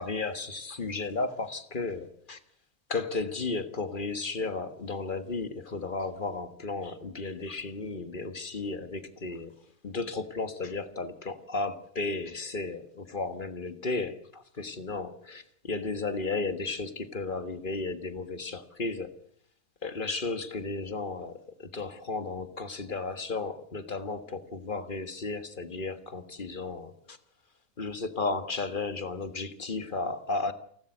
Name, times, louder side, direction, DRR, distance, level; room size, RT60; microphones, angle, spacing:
voice 1, 0.0-2.4 2.9-9.5 9.8-19.2 19.8-27.2 27.8-30.5, left 3 dB, 40° left, 1.7 m, -34 dB
28.5 x 12.5 x 7.9 m
omnidirectional pair, 1.4 m